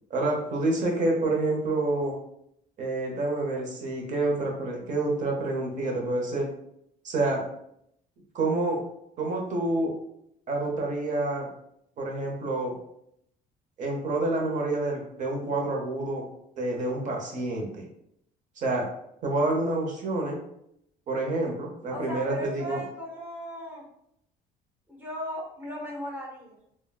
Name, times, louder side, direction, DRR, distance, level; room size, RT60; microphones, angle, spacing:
voice 1, 0.1-2.2 2.8-6.5 7.0-7.4 8.3-8.8 9.2-10.0 10.5-11.5 12.0-12.7 13.8-16.3 16.6-17.9 18.6-18.9 19.2-20.4 21.1-22.8, right 2 dB, 50° right, 0 dB, 0.9 m, -28 dB
voice 2, 21.9-23.9 24.9-26.6, equal, 10° right, -4 dB, 1.2 m, -37 dB
3.6 x 2.2 x 2.3 m, 0.74 s
cardioid pair, 110°, 17 cm